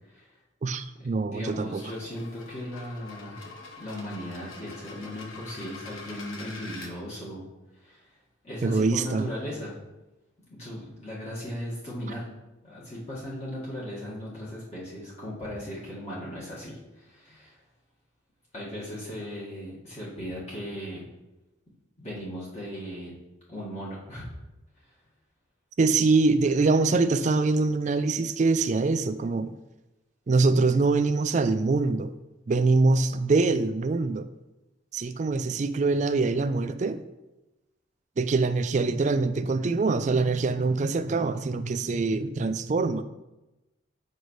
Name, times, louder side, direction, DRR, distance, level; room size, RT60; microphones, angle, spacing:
voice 1, 0.6-1.8 8.6-9.3 25.8-29.6 30.3-32.1 32.5-34.3 34.9-37.0 38.2-43.0, right 3 dB, 35° right, 10 dB, 0.3 m, -24 dB
voice 2, 1.2-3.4 3.8-7.4 7.8-8.1 8.4-9.7 10.5-12.3 12.6-17.6 18.5-21.0 22.0-23.1 23.5-24.3, equal, 35° left, -8 dB, 1.7 m, -37 dB
sound 1, 1.6-6.9, left 3 dB, 80° left, 0.9 m, -45 dB
7.9 x 5.3 x 3.1 m, 1.0 s
head